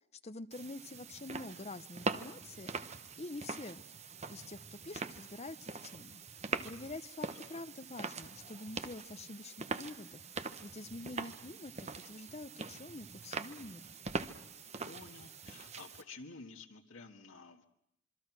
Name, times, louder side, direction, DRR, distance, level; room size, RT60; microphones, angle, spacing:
voice 1, 0.2-2.9 3.2-3.8 4.3-6.2 6.6-13.9, left 2 dB, 30° left, 12 dB, 0.8 m, -47 dB
sound 1, 0.5-16.0, right 4 dB, 35° right, 1.0 m, -43 dB
voice 2, 14.8-17.6, left 3 dB, 75° left, 3 dB, 1.7 m, -52 dB
26.5 x 24.0 x 6.1 m, 0.77 s
head